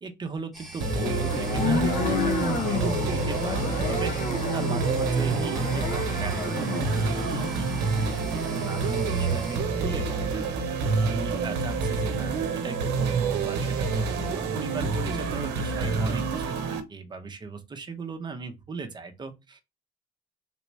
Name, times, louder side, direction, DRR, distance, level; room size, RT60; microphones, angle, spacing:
voice 1, 0.0-4.1 4.5-7.7 8.1-10.6 11.0-19.6, right 4 dB, 25° right, 0.8 m, -38 dB
sound 1, 0.5-9.6, right 2 dB, ahead, 1.3 m, -44 dB
sound 2, 0.8-7.6, left 3 dB, 45° left, 0.8 m, -30 dB
sound 3, 0.8-16.8, right 4 dB, 90° right, 0.7 m, -28 dB
3.4 x 2.9 x 3.0 m
cardioid pair, 110°, 17 cm